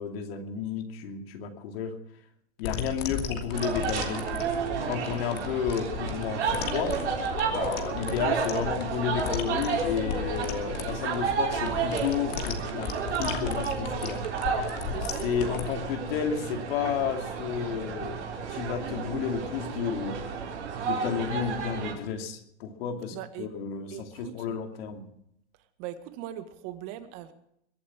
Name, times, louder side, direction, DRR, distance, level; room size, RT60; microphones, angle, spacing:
voice 1, 0.0-2.0 2.6-4.3 4.9-7.0 7.5-14.3 15.0-18.2 18.5-20.2 20.9-25.1, left 7 dB, 60° left, 4 dB, 2.7 m, -32 dB
sound 1, 2.6-15.7, left 7 dB, 45° left, 2.6 m, -36 dB
sound 2, 3.5-21.9, right 5 dB, 80° right, 4.8 m, -32 dB
voice 2, 23.1-23.5 23.9-24.6 25.8-27.3, right 12 dB, 40° right, 9 dB, 1.8 m, -40 dB
22.5 x 8.6 x 7.4 m, 0.76 s
hypercardioid pair, 140°, 34 cm